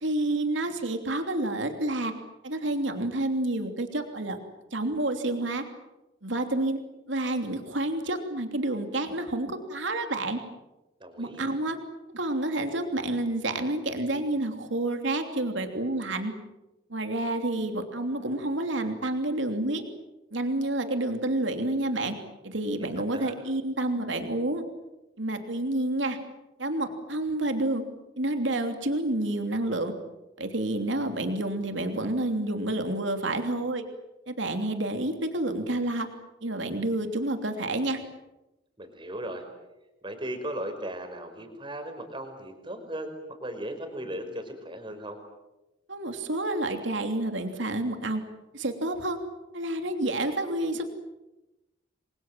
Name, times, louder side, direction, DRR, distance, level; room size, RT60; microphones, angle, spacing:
voice 1, 0.0-2.1 2.4-4.4 4.7-5.6 6.2-6.8 7.1-10.4 11.2-11.8 12.1-16.3 16.9-19.8 20.3-22.2 22.4-24.6 25.2-26.2 26.6-27.8 28.2-29.9 30.4-33.8 34.3-36.1 36.4-38.0 45.9-48.2 48.5-49.2 49.5-50.9, right 1 dB, 75° right, 6 dB, 3.0 m, -29 dB
voice 2, 11.0-11.6 22.8-23.3 38.8-39.4 40.0-45.2, right 1 dB, 25° right, 6 dB, 5.3 m, -37 dB
30.0 x 24.0 x 7.7 m, 0.99 s
head